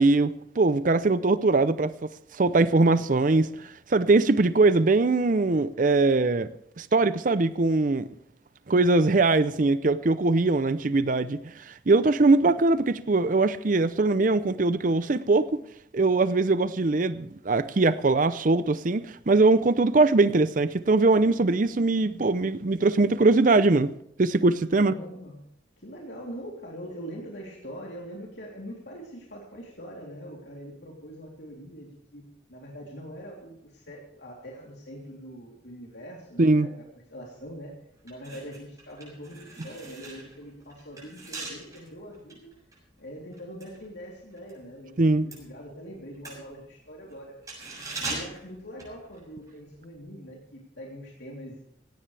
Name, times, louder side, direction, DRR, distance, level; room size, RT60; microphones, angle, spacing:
voice 1, 0.0-6.5 6.8-8.0 8.7-15.6 15.9-23.9 24.2-24.9 36.4-36.7 45.0-45.3, right 3 dB, 45° right, 0.6 m, -22 dB
voice 2, 24.8-25.4 25.8-36.8 37.1-37.7 38.0-42.5 43.0-47.4 48.0-51.6, equal, 70° left, 3.3 m, -43 dB
sound 1, 37.4-37.6 38.0-44.6 44.9-49.5 49.8-50.0, right 2 dB, 20° right, 6.9 m, -41 dB
17.5 x 17.0 x 3.4 m
head